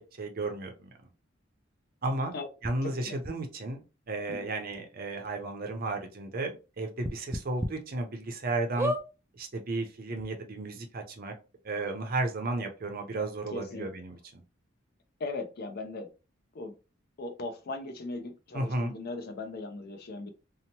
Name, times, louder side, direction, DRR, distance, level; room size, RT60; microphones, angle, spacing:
voice 1, 0.2-0.9 2.0-2.3 2.6-6.5 6.8-8.9 9.4-11.3 11.6-14.4 18.5-18.9, right 2 dB, 50° right, 4 dB, 0.6 m, -33 dB
sound 1, 2.6-2.7 3.2-3.3 4.3-4.4 4.7-4.8 5.2-5.3 7.0-7.7 8.2-8.3 8.8-9.0 9.9-10.0 10.2-10.3, equal, 15° right, 0.3 m, -31 dB
voice 2, 2.8-3.2 4.3-4.5 13.5-13.9 15.2-16.1 16.5-16.7 17.2-20.3, left 2 dB, 55° left, 6 dB, 0.5 m, -38 dB
2.8 x 2.1 x 2.9 m, 0.31 s
head